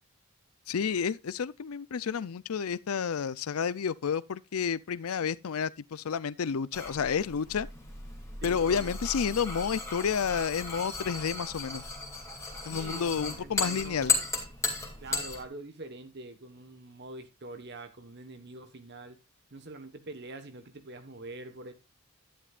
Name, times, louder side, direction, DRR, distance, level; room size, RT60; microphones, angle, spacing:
voice 1, 0.7-7.7 8.4-11.8 12.7-14.1, left 6 dB, 80° left, 0.5 m, -30 dB
sound 1, 6.7-15.4, left 4 dB, 15° left, 2.6 m, -35 dB
voice 2, 8.4-8.9 12.5-14.2 15.0-19.2 19.5-21.7, right 2 dB, 50° right, 1.3 m, -45 dB
11.5 x 11.0 x 2.4 m
head